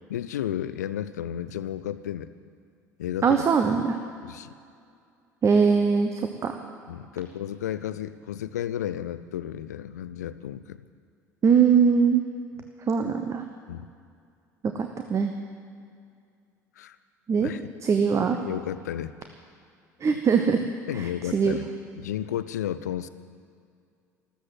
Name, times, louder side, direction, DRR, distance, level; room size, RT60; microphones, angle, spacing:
voice 1, 0.1-2.3 3.0-3.4 4.2-4.5 6.9-10.8 13.7-13.9 16.8-17.0 17.4-17.6 18.3-19.1 20.1-20.2 20.9-21.6 22.0-23.1, left 11 dB, 70° left, 13 dB, 0.6 m, -32 dB
voice 2, 3.2-4.0 5.4-6.6 11.4-12.2 12.9-13.4 14.7-15.3 17.3-17.5 17.8-18.4 20.0-20.6 20.9-21.6, right 6 dB, 30° right, 5 dB, 1.1 m, -22 dB
14.0 x 13.5 x 7.7 m, 2.3 s
figure-of-eight pair, 65°, 9 cm